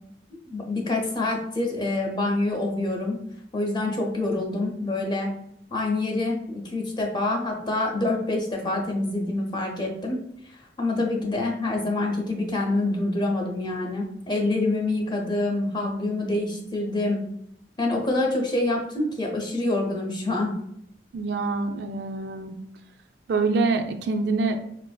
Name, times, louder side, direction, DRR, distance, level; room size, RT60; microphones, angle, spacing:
voice 1, 0.3-3.2 3.5-5.3 5.7-10.2 10.5-17.2 17.8-20.5, left 2 dB, 25° left, 0 dB, 0.5 m, -26 dB
voice 2, 21.1-22.5 23.3-24.6, right 3 dB, 60° right, 5 dB, 0.3 m, -25 dB
4.2 x 2.4 x 2.2 m, 0.72 s
head